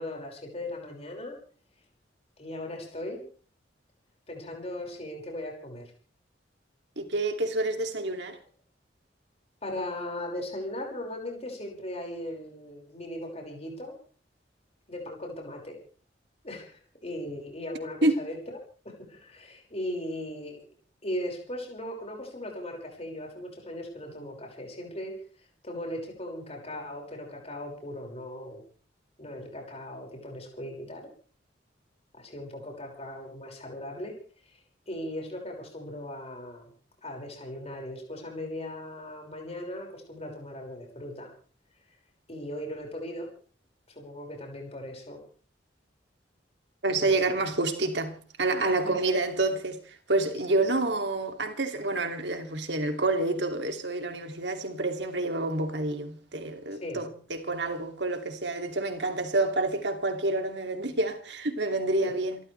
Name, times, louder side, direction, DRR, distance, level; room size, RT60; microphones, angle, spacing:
voice 1, 0.0-1.4 2.4-3.2 4.3-5.9 9.6-14.0 14.9-15.8 16.4-18.4 18.8-20.7 21.0-28.6 29.2-31.1 32.1-36.8 37.0-41.3 41.7-42.0 42.3-43.3 43.9-45.2 46.9-47.2 48.6-48.9 50.4-50.7 56.7-57.1 62.0-62.1, left 1 dB, 35° left, 5.8 m, -38 dB
voice 2, 7.0-8.4 18.0-18.1 46.8-62.4, right 2 dB, 75° right, 2.8 m, -28 dB
28.5 x 14.0 x 3.4 m
head